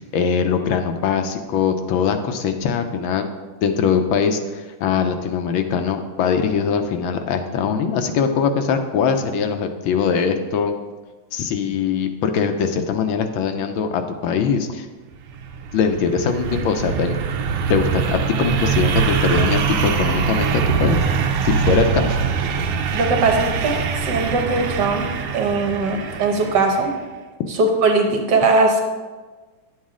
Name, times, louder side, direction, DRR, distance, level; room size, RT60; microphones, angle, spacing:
voice 1, 0.0-3.2 3.6-10.7 11.3-14.9 15.7-17.2 17.7-21.0 21.4-22.2, left 6 dB, 75° left, 7 dB, 1.5 m, -21 dB
sound 1, 15.2-26.9, right 6 dB, 85° right, 1.6 m, -23 dB
voice 2, 22.9-25.1 25.3-26.9 27.6-28.8, right 3 dB, 60° right, 3 dB, 1.7 m, -19 dB
11.0 x 7.3 x 3.7 m, 1.3 s
omnidirectional pair, 2.3 m